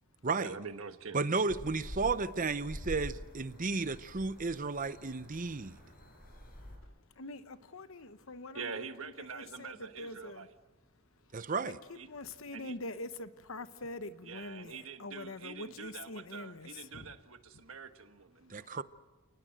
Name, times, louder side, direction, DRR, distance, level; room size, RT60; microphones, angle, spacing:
voice 1, 0.4-1.2 8.5-10.5 11.9-12.1 12.5-12.8 14.2-18.7, right 5 dB, 65° right, 1.5 m, -45 dB
voice 2, 1.1-5.7 11.3-11.8 18.5-18.8, right 4 dB, 35° right, 0.8 m, -33 dB
sound 1, 1.5-6.8, equal, 40° left, 5.5 m, -47 dB
voice 3, 6.8-10.5 11.6-17.1 18.6-18.7, left 2 dB, 60° left, 1.1 m, -45 dB
29.5 x 19.5 x 7.8 m
head